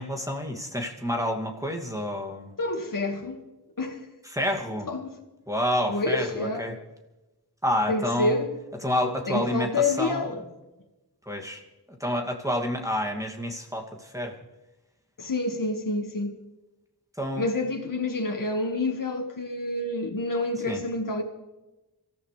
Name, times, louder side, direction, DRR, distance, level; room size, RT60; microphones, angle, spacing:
voice 1, 0.0-2.5 4.3-4.9 5.5-6.7 7.6-8.4 8.8-10.4 11.3-11.6 12.0-14.3 17.2-17.5 20.7-20.8, equal, 10° right, 2.4 m, -29 dB
voice 2, 2.6-3.4 3.8-4.0 4.9-5.1 5.9-6.7 7.9-8.5 9.3-10.4 15.2-16.4 17.4-21.2, left 2 dB, 55° left, 1.9 m, -28 dB
26.0 x 14.5 x 3.4 m
wide cardioid pair, 50°, 40 cm